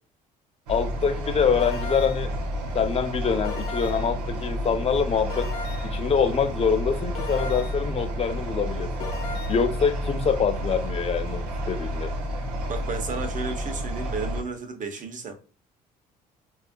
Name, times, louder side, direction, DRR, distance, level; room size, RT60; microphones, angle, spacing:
voice 1, 0.7-2.3 2.7-5.5 5.8-12.1, left 6 dB, 30° left, 0.5 m, -25 dB
sound 1, 0.7-14.4, equal, 85° right, 0.6 m, -30 dB
sound 2, 1.6-2.3 3.4-4.2 5.3-6.0 7.1-7.9 9.0-9.6, left 3 dB, 90° left, 0.5 m, -36 dB
voice 2, 12.7-15.3, right 4 dB, 40° right, 0.8 m, -33 dB
4.1 x 2.4 x 2.2 m
hypercardioid pair, 60°, 20 cm